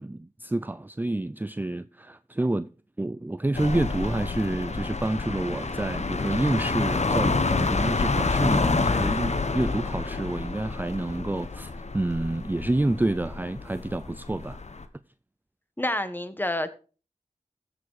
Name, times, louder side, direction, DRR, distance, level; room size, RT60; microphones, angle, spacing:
voice 1, 0.0-2.7 3.0-14.6, right 2 dB, 15° right, 0.5 m, -28 dB
sound 1, 3.5-14.8, left 3 dB, 60° left, 1.3 m, -28 dB
voice 2, 15.8-16.7, left 1 dB, 15° left, 1.5 m, -28 dB
15.0 x 7.0 x 4.9 m
cardioid pair, 45°, 13 cm